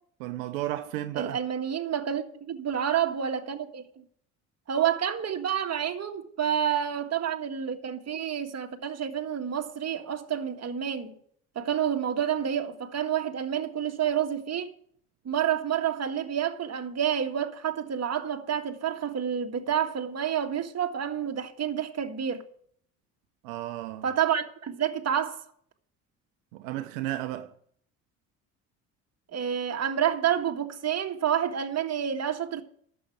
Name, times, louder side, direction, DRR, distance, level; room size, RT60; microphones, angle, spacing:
voice 1, 0.2-1.4 23.4-24.1 26.5-27.5, right 14 dB, 80° right, 0.9 m, -33 dB
voice 2, 1.2-3.8 4.7-11.1 11.6-14.7 15.3-22.4 24.0-25.4 29.3-32.6, right 9 dB, 40° right, 1.8 m, -29 dB
11.5 x 7.7 x 8.8 m
hypercardioid pair, 65°, 39 cm